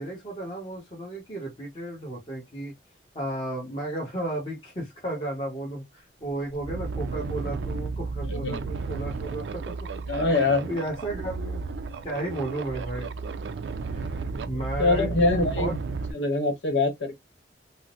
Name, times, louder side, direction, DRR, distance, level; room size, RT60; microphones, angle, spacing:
voice 1, 0.0-2.7 3.1-9.8 10.2-11.6 12.0-13.1 13.8-15.1 15.4-15.8, right 1 dB, 30° left, 1.2 m, -34 dB
sound 1, 5.7-5.8 6.2-16.1, right 4 dB, 80° right, 0.4 m, -33 dB
voice 2, 8.2-8.6 10.1-10.7 14.8-15.8 16.1-17.1, left 3 dB, 85° left, 1.0 m, -24 dB
3.7 x 2.1 x 2.4 m
head